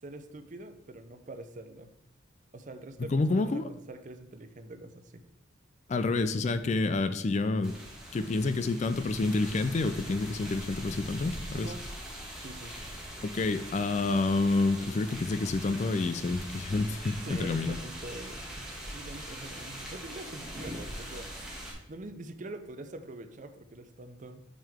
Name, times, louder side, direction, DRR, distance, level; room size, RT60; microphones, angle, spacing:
voice 1, 0.0-1.9 2.5-5.2 11.5-11.8 12.4-12.8 17.2-21.3 21.9-24.4, right 2 dB, 40° right, 8 dB, 0.5 m, -44 dB
voice 2, 3.1-3.7 5.9-7.8 8.1-11.7 13.2-17.8, left 3 dB, 35° left, 11 dB, 0.3 m, -28 dB
sound 1, 7.6-21.7, equal, 5° right, 1.4 m, -42 dB
6.6 x 6.1 x 3.5 m, 0.80 s
head